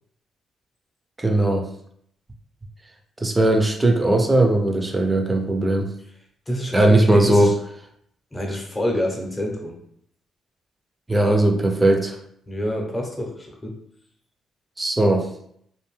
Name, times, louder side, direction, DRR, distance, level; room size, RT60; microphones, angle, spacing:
voice 1, 1.2-1.6 3.2-5.9 6.7-7.5 11.1-12.2 14.8-15.3, right 1 dB, 15° right, 4 dB, 0.5 m, -18 dB
voice 2, 6.5-7.5 8.3-9.7 12.5-13.8, equal, 15° left, 0 dB, 0.7 m, -27 dB
2.5 x 2.2 x 3.1 m, 0.68 s
cardioid pair, 90°, 0 cm